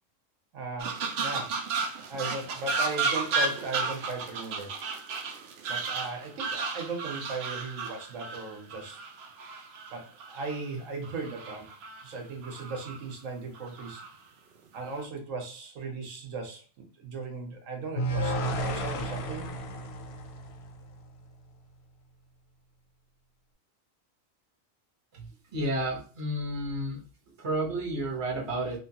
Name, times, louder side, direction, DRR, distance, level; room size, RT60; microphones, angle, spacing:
voice 1, 0.5-1.6 2.1-4.8 5.7-9.0 9.9-11.7 12.0-14.0 14.7-19.5, right 3 dB, 80° right, 2 dB, 1.2 m, -37 dB
sound 1, 0.8-10.6 11.0-12.1 12.4-13.0 13.5-14.1 14.7-15.0, right 4 dB, 65° right, 0.7 m, -33 dB
sound 2, 18.0-21.2, right 1 dB, 65° left, 0.7 m, -32 dB
voice 2, 25.1-27.0 27.4-28.8, right 1 dB, 30° right, -2 dB, 0.8 m, -31 dB
3.0 x 2.2 x 2.8 m, 0.36 s
omnidirectional pair, 1.3 m